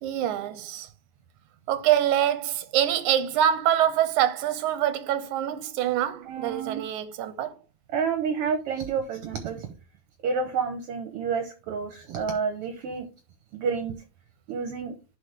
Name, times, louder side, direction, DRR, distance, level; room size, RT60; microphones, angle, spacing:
voice 1, 0.0-0.9 1.7-7.6, right 11 dB, 90° right, 2.1 m, -25 dB
voice 2, 6.3-6.8 7.9-9.7 10.2-13.1 13.5-13.9 14.5-14.9, right 6 dB, 65° right, 1.5 m, -29 dB
11.0 x 4.0 x 3.4 m
omnidirectional pair, 3.4 m